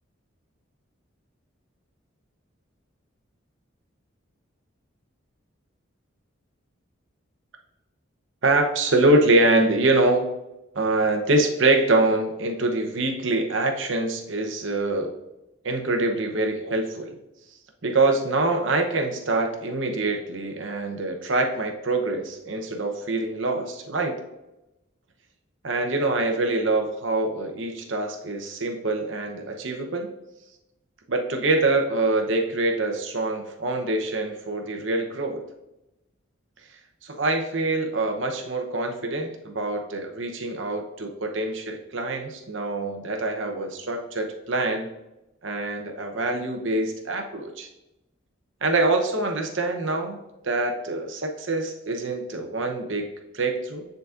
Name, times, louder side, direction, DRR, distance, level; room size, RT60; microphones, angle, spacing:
voice 1, 8.4-10.3 10.7-15.1 15.6-17.2 17.8-24.2 25.6-30.1 31.1-35.4 36.7-44.9 45.4-47.7 48.6-50.2 50.4-53.9, right 2 dB, 65° right, 4 dB, 0.9 m, -25 dB
9.6 x 3.9 x 2.5 m, 0.93 s
head